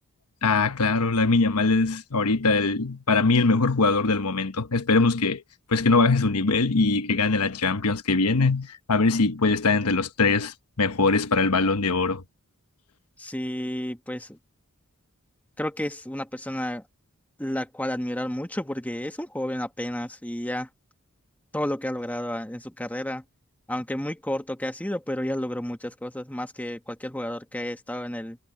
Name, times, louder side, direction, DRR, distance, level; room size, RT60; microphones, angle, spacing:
voice 1, 0.4-5.4 5.7-12.2, left 3 dB, 90° left, 1.1 m, -22 dB
voice 2, 13.2-14.4 15.6-16.8 17.4-20.7 21.5-23.2 23.7-28.4, left 1 dB, 5° left, 1.4 m, -31 dB
head